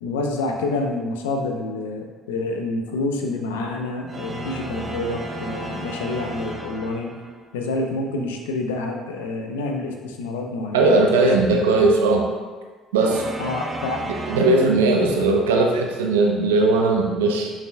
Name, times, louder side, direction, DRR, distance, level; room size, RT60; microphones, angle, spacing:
voice 1, 0.0-7.1 7.5-11.6 13.4-14.1 14.9-15.3, left 2 dB, 80° left, 3 dB, 0.7 m, -28 dB
sound 1, 4.0-7.4 13.0-14.4, right 1 dB, 35° right, 1.0 m, -33 dB
voice 2, 10.7-12.3 12.9-13.2 14.3-17.5, right 3 dB, 85° right, 1 dB, 0.7 m, -18 dB
6.7 x 6.0 x 2.3 m, 1.4 s
hypercardioid pair, 55°, 0 cm